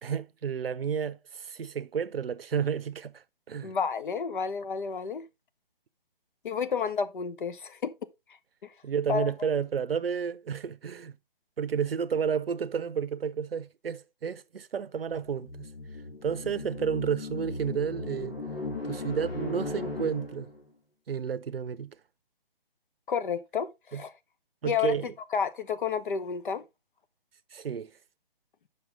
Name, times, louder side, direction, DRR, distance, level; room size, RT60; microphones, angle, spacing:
voice 1, 0.0-3.8 8.8-11.2 11.6-15.7 16.2-18.4 18.9-20.5 21.1-22.0 23.9-24.0 24.6-25.1 27.5-27.9, right 7 dB, 80° right, 0.7 m, -31 dB
voice 2, 3.6-5.3 6.4-7.9 8.6-8.7 9.1-9.5 23.1-24.1 24.6-24.9 25.3-26.6, left 6 dB, 60° left, 1.0 m, -30 dB
sound 1, 15.1-20.6, left 2 dB, 85° left, 2.9 m, -37 dB
7.7 x 5.9 x 3.5 m
figure-of-eight pair, 150°, 29 cm